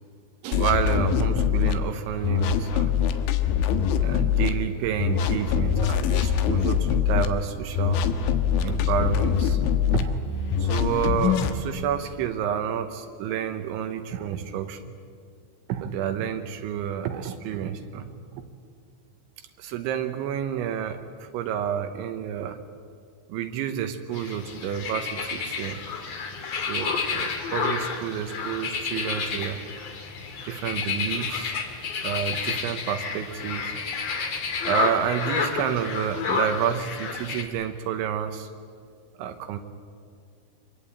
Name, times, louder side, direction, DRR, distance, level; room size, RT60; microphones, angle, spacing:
voice 1, 0.4-2.9 4.0-8.0 8.6-9.6 9.9-10.3 10.6-14.9 15.7-18.4 19.6-22.6 23.3-25.8 26.7-29.6 30.4-31.6 32.0-33.8 34.6-38.5 39.2-39.6, right 9 dB, 80° right, 7 dB, 3.3 m, -29 dB
sound 1, 0.5-1.8 2.2-4.5 5.0-7.3 7.8-10.0 10.5-11.6, left 9 dB, 75° left, 3.4 m, -23 dB
sound 2, 4.9-10.8, right 6 dB, 65° right, 3.6 m, -36 dB
sound 3, 24.1-37.4, left 5 dB, 45° left, 2.4 m, -30 dB
25.5 x 22.5 x 8.8 m, 2.2 s
omnidirectional pair, 5.6 m